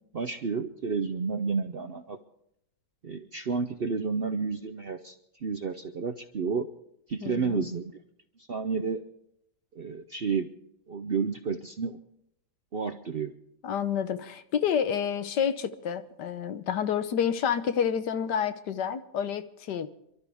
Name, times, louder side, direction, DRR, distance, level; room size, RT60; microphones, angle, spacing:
voice 1, 0.1-2.2 3.0-5.1 5.4-6.7 7.1-7.9 8.5-9.0 9.8-10.5 10.9-12.0 12.7-13.3, right 5 dB, 55° right, 0.7 m, -31 dB
voice 2, 7.2-7.7 13.6-19.9, left 8 dB, 80° left, 1.6 m, -29 dB
28.0 x 12.5 x 3.5 m
omnidirectional pair, 1.8 m